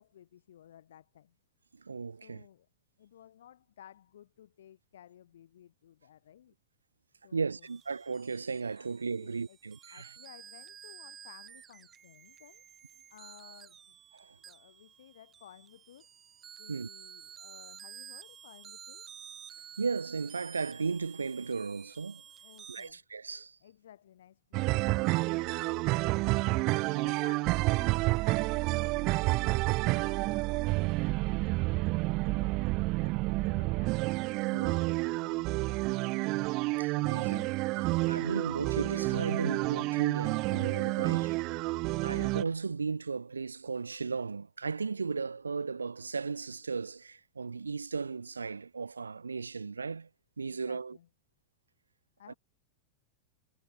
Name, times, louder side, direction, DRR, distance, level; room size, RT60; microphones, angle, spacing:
voice 1, 0.0-1.4 2.1-2.7 3.0-6.5 7.2-7.7 8.8-8.9 9.1-9.6 9.9-12.6 13.1-14.0 14.4-16.1 16.6-19.1 22.4-23.0 23.6-31.9 32.2-32.5 33.0-34.0 34.4-36.2 50.4-51.1 52.2-52.3, left 10 dB, 60° left, 3.5 m, -56 dB
voice 2, 1.7-2.4 7.3-10.1 14.1-14.4 16.7-16.9 19.8-22.2 22.7-23.6 34.5-34.8 36.8-41.8 42.0-50.1 50.4-51.0 52.3-52.4, right 4 dB, 75° right, 1.3 m, -36 dB
sound 1, 7.6-22.9, right 8 dB, 25° right, 7.3 m, -52 dB
sound 2, 24.5-42.4, right 23 dB, 40° right, 0.3 m, -29 dB
figure-of-eight pair, 90°, 0 cm